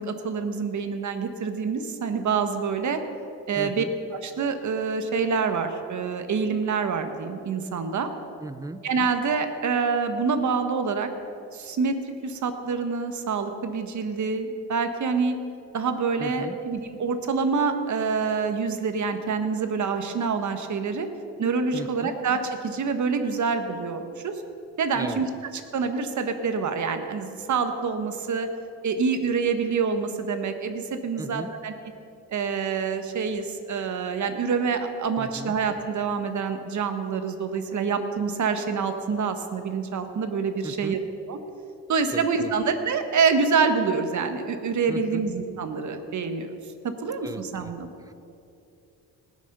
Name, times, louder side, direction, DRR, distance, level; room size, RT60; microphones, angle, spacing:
voice 1, 0.0-3.0 3.5-3.8 4.1-8.1 8.8-11.1 11.5-12.0 12.2-15.4 15.7-21.1 21.4-22.4 22.6-24.4 24.8-25.3 25.7-28.5 28.8-31.7 32.3-41.0 41.3-41.4 41.9-46.5 46.8-47.9, right 5 dB, 50° right, 7 dB, 1.3 m, -26 dB
voice 2, 3.6-3.9 8.4-8.8 16.2-16.6 21.7-22.1 24.9-25.2 31.2-31.5 35.2-35.5 40.6-41.0 42.1-42.5 44.9-45.3 47.2-47.7 48.0-48.1, right 2 dB, 10° right, 13 dB, 0.4 m, -37 dB
19.0 x 6.5 x 5.5 m, 2.7 s
cardioid pair, 90°, 37 cm